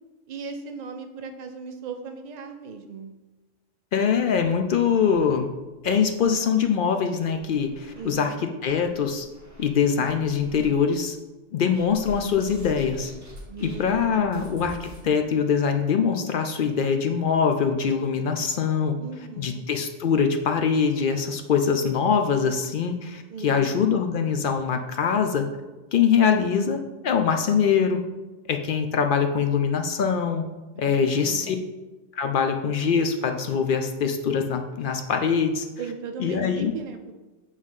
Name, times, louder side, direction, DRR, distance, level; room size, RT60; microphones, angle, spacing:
voice 1, 0.3-3.1 7.9-8.3 13.5-14.6 19.0-19.7 23.3-23.7 30.7-31.6 35.8-37.1, right 5 dB, 45° right, 5 dB, 0.6 m, -38 dB
voice 2, 3.9-5.5 5.8-8.3 8.6-9.3 9.6-11.2 11.5-13.1 13.6-19.0 19.4-25.5 25.9-28.0 28.5-30.5 30.8-31.6 32.1-35.6 36.2-36.7, left 6 dB, 65° left, 6 dB, 0.5 m, -23 dB
sound 1, 4.1-5.7 6.0-6.1 6.5-6.6 7.2-8.1 8.6-9.7 10.0-10.7 11.7-15.0, right 1 dB, 15° right, 1.4 m, -45 dB
7.3 x 3.2 x 5.5 m, 1.2 s
omnidirectional pair, 1.4 m